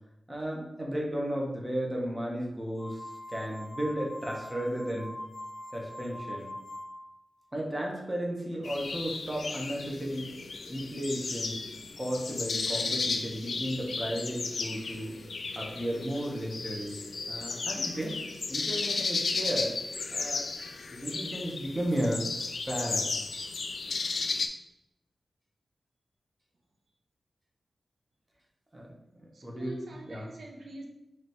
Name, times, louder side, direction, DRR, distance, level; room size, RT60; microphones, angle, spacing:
voice 1, 0.3-5.1 5.7-6.5 7.5-10.3 10.7-11.6 12.0-15.2 15.5-18.2 18.5-19.8 20.1-20.5 20.9-22.2 22.6-23.0 28.7-29.7 30.1-30.3, equal, 20° right, -2 dB, 0.9 m, -34 dB
sound 1, 2.8-7.2, left 1 dB, 10° left, 0.8 m, -42 dB
sound 2, 8.6-24.5, left 4 dB, 70° left, 0.3 m, -34 dB
voice 2, 29.3-30.9, right 1 dB, 75° right, -1 dB, 0.6 m, -43 dB
3.2 x 3.0 x 4.2 m, 0.89 s
wide cardioid pair, 115°, 0 cm